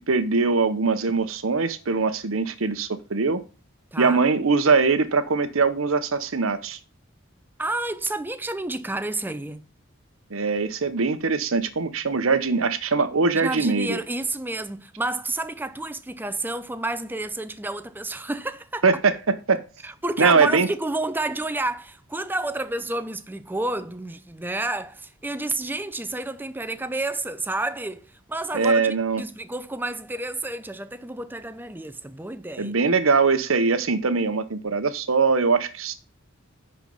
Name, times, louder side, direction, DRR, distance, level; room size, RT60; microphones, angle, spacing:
voice 1, 0.0-3.4 4.0-6.8 10.3-14.0 18.8-19.1 19.5-19.6 20.2-20.7 28.5-29.2 32.6-35.9, right 4 dB, 85° right, 0.9 m, -22 dB
voice 2, 7.6-9.6 13.3-18.8 19.8-32.7, right 2 dB, 10° right, 0.6 m, -30 dB
10.0 x 4.5 x 5.3 m
head